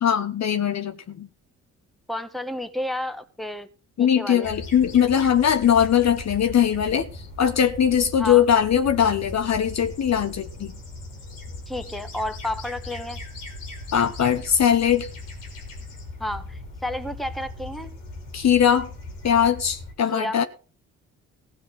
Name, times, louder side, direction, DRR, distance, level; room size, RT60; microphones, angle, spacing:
voice 1, 0.0-1.3 4.0-10.7 13.9-15.1 18.3-18.9 19.2-20.4, left 9 dB, 50° left, 1.0 m, -20 dB
voice 2, 2.1-3.7 4.0-4.5 8.2-8.4 11.7-13.2 16.2-17.9 20.1-20.4, left 1 dB, ahead, 1.5 m, -31 dB
sound 1, 4.4-19.9, left 2 dB, 85° left, 2.8 m, -39 dB
15.5 x 5.9 x 6.6 m
hypercardioid pair, 45°, 36 cm